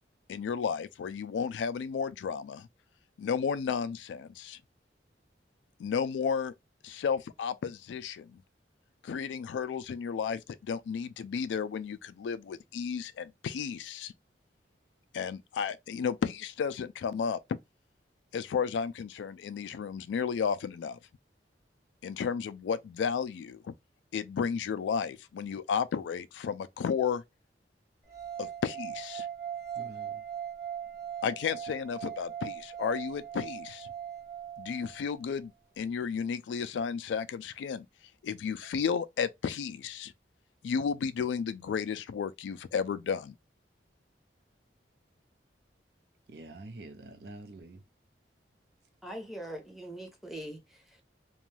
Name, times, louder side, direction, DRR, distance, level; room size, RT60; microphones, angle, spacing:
voice 1, 0.3-2.7 3.2-4.6 5.8-6.5 6.8-8.4 9.0-14.1 15.1-17.4 18.3-21.0 22.0-23.7 24.1-27.2 28.4-29.3 31.2-33.9 34.6-35.5 35.8-37.8 38.2-40.1 40.6-43.3, left 6 dB, 90° left, 0.3 m, -33 dB
sound 1, 28.1-35.2, right 9 dB, 20° right, 1.0 m, -40 dB
voice 2, 29.7-30.2 46.3-47.8, right 2 dB, 65° right, 0.5 m, -46 dB
voice 3, 49.0-51.0, right 1 dB, ahead, 0.7 m, -42 dB
2.5 x 2.3 x 3.1 m
head